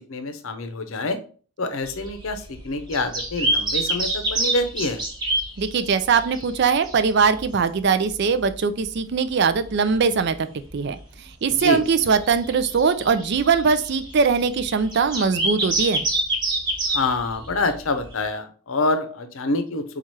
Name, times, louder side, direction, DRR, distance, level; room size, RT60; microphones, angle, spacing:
voice 1, 0.1-1.2 1.6-5.0 11.5-11.8 16.9-19.8, left 2 dB, 70° left, 8 dB, 0.6 m, -26 dB
sound 1, 1.8-7.8 8.1-8.2 8.4-8.5 8.8-8.9 9.5-10.4 10.7-10.8 11.4-18.1, right 1 dB, 20° right, 0.9 m, -27 dB
voice 2, 5.6-10.5 10.7-16.1, right 5 dB, 50° right, 11 dB, 0.4 m, -21 dB
4.3 x 2.4 x 4.6 m, 0.40 s
head